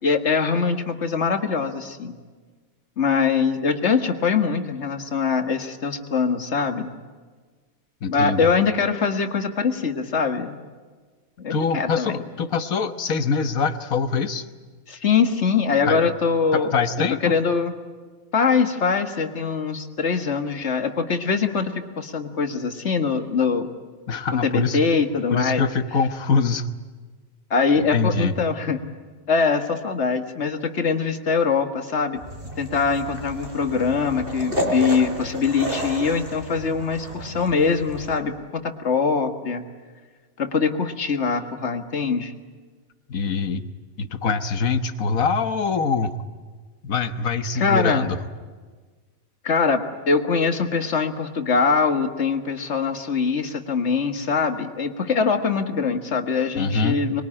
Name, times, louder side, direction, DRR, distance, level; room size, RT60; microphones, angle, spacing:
voice 1, 0.0-2.2 3.0-6.9 8.1-10.6 11.4-12.2 14.9-16.7 17.2-17.7 18.3-23.7 24.4-25.6 27.5-28.8 29.3-32.2 32.6-39.6 40.4-42.3 47.6-48.1 49.4-57.2, left 5 dB, 55° left, 6 dB, 2.0 m, -23 dB
voice 2, 8.0-8.5 11.5-14.5 15.9-16.0 16.5-17.3 24.1-24.8 25.3-26.7 27.8-28.3 43.1-43.7 44.0-46.1 46.8-48.2 56.6-57.0, left 5 dB, 85° left, 10 dB, 1.7 m, -24 dB
sound 1, 32.2-38.2, equal, 40° right, 3.9 m, -31 dB
26.0 x 22.0 x 9.9 m, 1.4 s
omnidirectional pair, 1.4 m